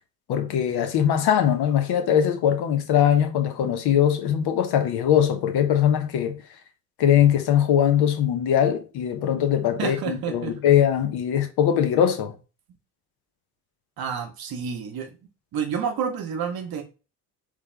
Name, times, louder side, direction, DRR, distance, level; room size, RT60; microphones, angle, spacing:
voice 1, 0.3-6.4 7.0-12.4, left 9 dB, 55° left, 0.9 m, -21 dB
voice 2, 9.8-10.5 14.0-15.2 15.5-16.8, right 7 dB, 50° right, 1.0 m, -29 dB
3.4 x 3.3 x 3.3 m
hypercardioid pair, 55°, 46 cm